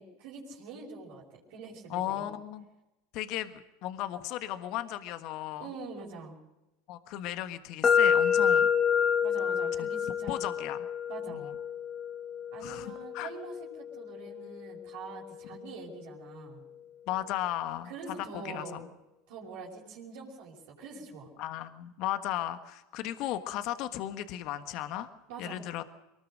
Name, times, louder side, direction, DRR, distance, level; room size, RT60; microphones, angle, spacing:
voice 1, 0.0-2.3 5.6-6.4 9.2-10.5 11.1-11.4 12.5-16.6 17.8-18.8 19.3-21.3 25.3-25.6, right 4 dB, 70° right, -4 dB, 5.6 m, -44 dB
voice 2, 1.9-2.6 3.1-5.7 6.9-8.7 9.8-9.9 10.3-10.9 11.3-11.5 12.6-13.3 17.1-17.9 18.3-18.8 21.4-25.1 25.4-25.8, left 13 dB, 55° left, 10 dB, 1.5 m, -35 dB
sound 1, 7.8-15.7, left 7 dB, 30° left, 1.5 m, -29 dB
23.0 x 20.0 x 6.4 m, 0.97 s
hypercardioid pair, 100°, 0 cm